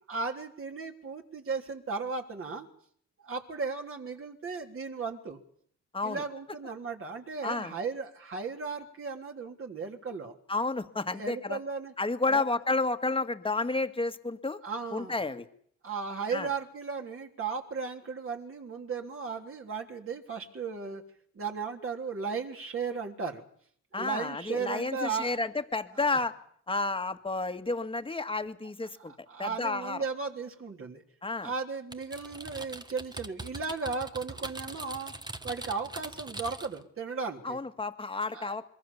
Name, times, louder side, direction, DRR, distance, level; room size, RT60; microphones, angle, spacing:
voice 1, 0.1-2.7 3.2-5.4 6.0-10.4 11.2-11.9 12.3-12.4 14.6-15.2 15.8-21.0 21.4-23.4 23.9-25.4 29.3-31.0 31.4-35.1 35.4-37.6 38.3-38.5, right 5 dB, 45° right, 3 dB, 3.5 m, -36 dB
voice 2, 7.4-7.7 10.5-11.6 12.0-14.6 14.9-15.5 16.3-16.5 23.9-26.4 26.7-29.1 29.4-30.0 31.2-31.5 37.4-38.7, left 3 dB, 15° left, 9 dB, 1.8 m, -31 dB
Typing, 31.9-36.8, right 2 dB, 15° right, 1.3 m, -42 dB
25.0 x 22.0 x 7.1 m, 0.62 s
cardioid pair, 90°, 30 cm